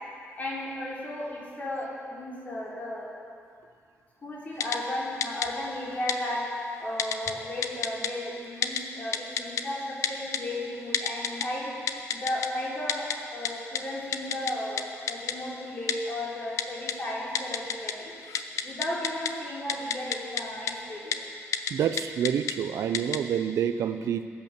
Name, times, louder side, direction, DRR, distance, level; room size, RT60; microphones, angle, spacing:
voice 1, 0.4-3.1 4.2-6.4 6.8-11.7 12.1-18.1 18.6-21.3, left 1 dB, 35° left, -5 dB, 4.0 m, -34 dB
Typing, 4.6-4.8 5.2-5.5 6.1-6.2 7.0-7.3 7.6-8.1 8.6-8.8 9.1-9.6 10.0-10.4 10.9-11.5 11.9-12.5 12.9-13.2 13.5-13.6 13.8-13.9 14.1-14.5 14.8-14.9 15.1-15.3 15.9-16.0 16.6-16.9 17.4-17.9 18.2-19.3 19.7-20.4 20.7-20.8 21.1-21.2 21.5-21.7 22.0-22.5 22.9-23.2, left 8 dB, 80° left, 0.8 m, -28 dB
voice 2, 21.7-24.3, right 9 dB, 80° right, 10 dB, 0.7 m, -28 dB
21.0 x 9.0 x 6.9 m, 2.3 s
wide cardioid pair, 165°, 5 cm